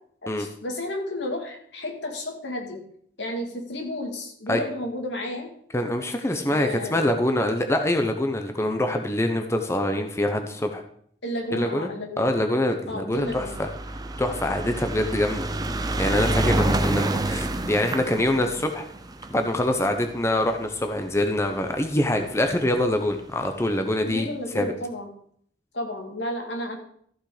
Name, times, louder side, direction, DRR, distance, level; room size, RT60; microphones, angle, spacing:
voice 1, 0.2-2.8 3.2-5.5 6.5-7.0 11.2-12.3 12.9-13.5 16.4-16.7 24.0-25.1 25.7-26.8, left 1 dB, 85° left, 2 dB, 2.4 m, -32 dB
voice 2, 5.7-10.8 11.5-11.9 12.2-13.7 14.2-15.5 16.0-18.9 19.3-24.3 24.5-24.7, left 1 dB, 15° left, 5 dB, 0.9 m, -24 dB
sound 1, 13.2-21.6 22.5-22.6 22.8-22.9 23.1-23.2, right 2 dB, 20° right, 0.7 m, -28 dB
14.0 x 6.3 x 5.0 m, 0.64 s
head